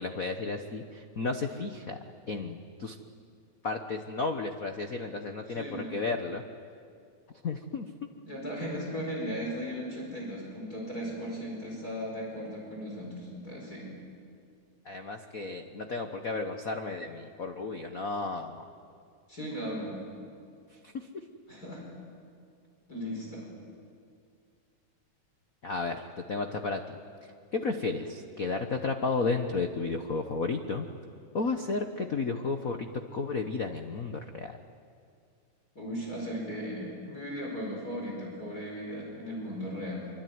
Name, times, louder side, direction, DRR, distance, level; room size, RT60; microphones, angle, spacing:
voice 1, 0.0-2.0 2.3-3.0 3.6-6.4 7.4-7.9 14.8-18.7 20.9-21.1 25.6-26.8 27.2-30.9 31.3-34.6, left 3 dB, 80° left, 6 dB, 0.7 m, -33 dB
voice 2, 5.5-6.0 8.2-13.9 19.3-20.0 21.5-21.8 22.9-23.5 35.8-40.1, equal, 30° left, -2 dB, 5.7 m, -37 dB
25.5 x 25.0 x 9.5 m, 2.3 s
omnidirectional pair, 3.4 m